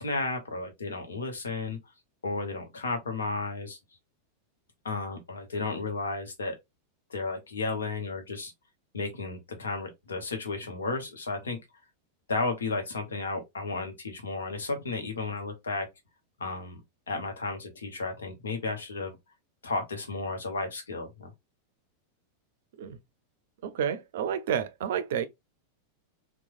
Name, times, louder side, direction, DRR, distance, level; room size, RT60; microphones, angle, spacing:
voice 1, 0.0-1.8 2.2-3.8 4.8-6.6 7.1-8.5 8.9-11.6 12.3-15.9 16.4-16.8 17.1-19.2 19.6-21.3, left 3 dB, 70° left, 0.8 m, -33 dB
voice 2, 23.6-25.3, right 8 dB, 55° right, 0.4 m, -30 dB
3.0 x 2.1 x 2.4 m
figure-of-eight pair, 90°, 0 cm